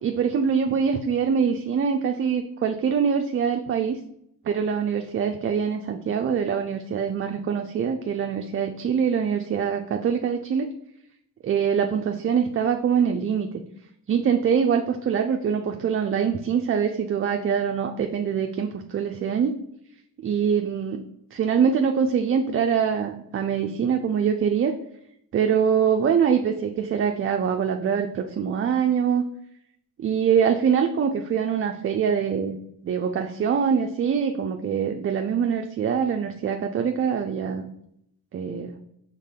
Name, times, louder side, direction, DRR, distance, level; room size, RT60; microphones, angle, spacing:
voice 1, 0.0-4.0 4.4-10.7 11.4-13.6 14.1-19.5 20.2-21.0 21.3-24.8 25.3-29.2 30.0-32.6 32.8-37.7 38.3-38.7, right 7 dB, 35° right, 5 dB, 0.4 m, -24 dB
4.1 x 3.6 x 3.6 m, 0.76 s
cardioid pair, 75°, 40 cm